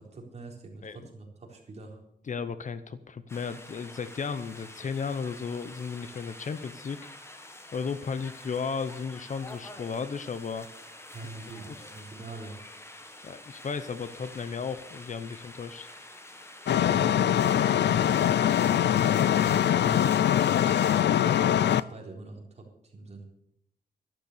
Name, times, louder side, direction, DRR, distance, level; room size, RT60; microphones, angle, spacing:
voice 1, 0.0-2.0 11.1-12.6 16.9-18.3 18.6-23.2, right 3 dB, 40° right, 0 dB, 4.0 m, -44 dB
voice 2, 2.3-7.0 7.7-10.7 13.2-15.9, left 5 dB, 45° left, 13 dB, 0.8 m, -34 dB
sound 1, 3.3-21.0, left 1 dB, 15° left, 1.5 m, -47 dB
Metro is Waiting, 16.7-21.8, left 10 dB, 80° left, 0.5 m, -23 dB
12.5 x 12.0 x 6.8 m, 0.73 s
wide cardioid pair, 150°, 18 cm